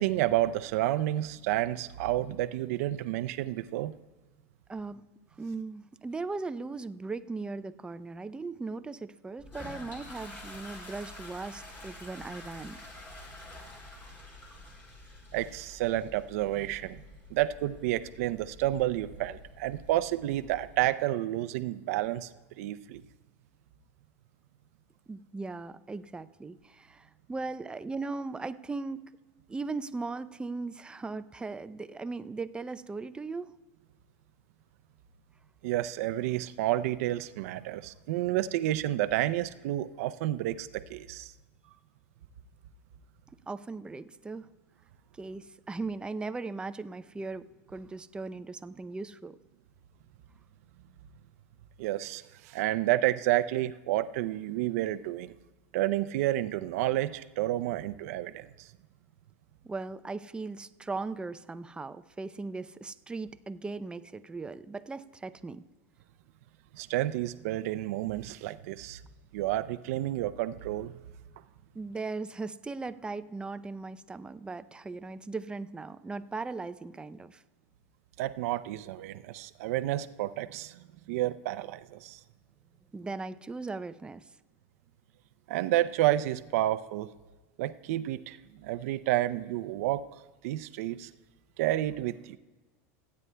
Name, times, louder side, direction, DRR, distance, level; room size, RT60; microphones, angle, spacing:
voice 1, 0.0-3.9 15.3-17.0 17.3-22.3 22.6-23.0 35.6-41.3 51.8-55.3 55.7-58.7 66.7-69.0 69.3-70.9 78.2-82.2 85.5-87.1 87.6-90.0 90.4-91.1 91.6-92.4, right 14 dB, 75° right, 13 dB, 0.5 m, -30 dB
voice 2, 4.7-5.0 5.4-12.8 25.1-29.1 29.5-33.5 43.5-44.5 45.1-49.4 59.6-65.6 71.7-77.4 82.9-84.3, right 3 dB, 10° right, 12 dB, 0.4 m, -38 dB
Toilet flush, 9.4-20.8, left 2 dB, 25° left, 4.4 m, -48 dB
26.5 x 9.5 x 2.2 m, 1.2 s
supercardioid pair, 110°, 8 cm